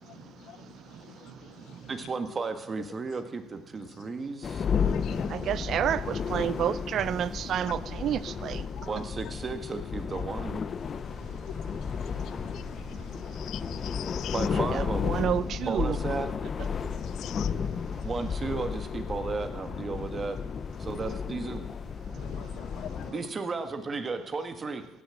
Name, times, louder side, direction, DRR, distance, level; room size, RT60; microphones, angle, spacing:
voice 1, 1.9-4.7 8.8-10.6 14.3-15.1 15.7-16.3 18.0-20.4 20.8-21.7 23.1-24.9, right 4 dB, 35° right, 1.6 m, -34 dB
sound 1, 4.4-23.1, left 6 dB, 40° left, 0.7 m, -33 dB
voice 2, 5.3-8.6 15.0-16.0, right 9 dB, 60° right, 0.5 m, -29 dB
voice 3, 13.4-14.3 17.2-17.5 22.3-23.1, left 12 dB, 70° left, 0.4 m, -42 dB
16.5 x 6.6 x 8.6 m
cardioid pair, 90°, 0 cm